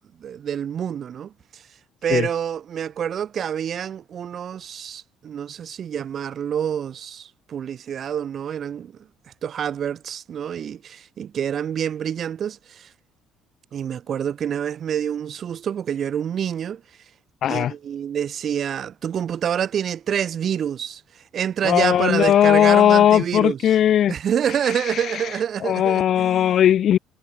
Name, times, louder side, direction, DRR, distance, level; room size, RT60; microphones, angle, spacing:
voice 1, 0.2-1.6 2.0-9.0 9.4-12.9 13.7-16.8 17.5-23.7 24.1-26.6, right 8 dB, 55° right, 2.6 m, -27 dB
voice 2, 17.4-17.7 21.6-24.1 25.6-27.0, left 10 dB, 60° left, 0.9 m, -17 dB
supercardioid pair, 70°, 0 cm